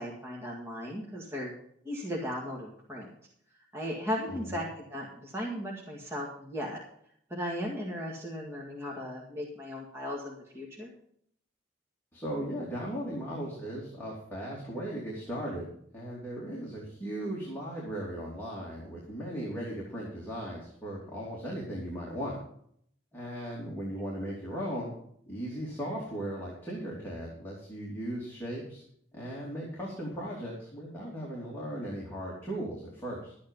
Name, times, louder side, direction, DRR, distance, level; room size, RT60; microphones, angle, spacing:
voice 1, 0.0-1.5 1.8-3.1 3.7-6.8 7.3-10.9, equal, 15° right, -3 dB, 1.9 m, -36 dB
voice 2, 4.3-4.6 12.1-15.7 15.9-22.4 23.1-24.9 25.3-28.8 29.1-33.3, equal, 10° left, -6 dB, 2.8 m, -37 dB
12.5 x 8.6 x 5.3 m, 0.67 s
head